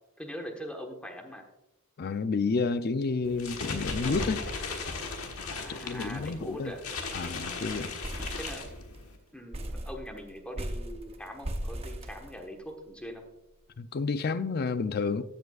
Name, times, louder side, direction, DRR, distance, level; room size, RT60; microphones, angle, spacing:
voice 1, 0.2-1.4 5.6-6.8 8.3-8.7 9.3-13.2, equal, 5° left, 1.2 m, -42 dB
voice 2, 2.0-4.4 5.7-6.7 7.1-7.9 13.8-15.2, left 4 dB, 45° left, 0.4 m, -30 dB
sound 1, 3.2-9.2, left 3 dB, 80° left, 1.4 m, -37 dB
sound 2, 6.0-6.2 6.5-6.6 6.9-7.3 7.7-9.1 9.5-12.8, right 1 dB, 30° right, 0.8 m, -38 dB
14.0 x 7.8 x 2.4 m
head